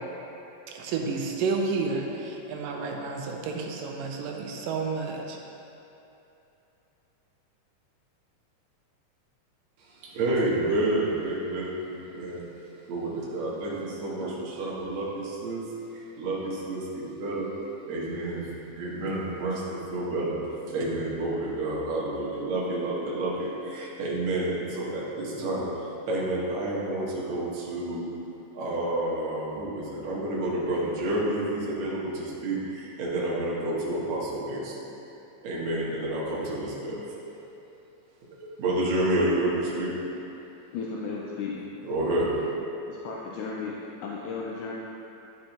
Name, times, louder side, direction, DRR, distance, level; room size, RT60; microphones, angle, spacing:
voice 1, 0.7-5.4, right 4 dB, 85° right, 0 dB, 2.2 m, -31 dB
voice 2, 9.9-12.4 12.9-15.6 15.9-17.5 17.9-18.4 18.7-20.4 20.7-28.1 28.5-34.8 35.4-37.0 38.4-39.9 41.5-41.6 41.8-42.4, right 1 dB, 60° right, -5 dB, 2.1 m, -29 dB
voice 3, 40.7-41.5 42.9-43.7 44.0-44.7, left 5 dB, 80° left, -4 dB, 1.7 m, -34 dB
10.5 x 5.3 x 2.9 m, 2.9 s
omnidirectional pair, 4.0 m